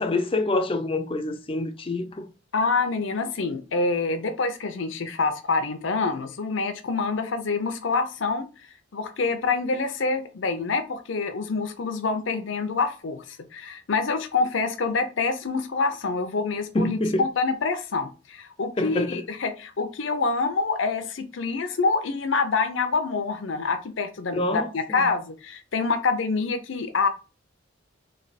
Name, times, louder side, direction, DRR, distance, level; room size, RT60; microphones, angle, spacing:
voice 1, 0.0-2.3 16.7-17.2 18.8-19.2 24.3-24.7 25.0-25.1, left 2 dB, 25° left, 0.4 m, -26 dB
voice 2, 2.5-8.5 8.9-13.2 13.5-27.1, left 4 dB, 70° left, 0.6 m, -26 dB
3.3 x 3.2 x 4.1 m
head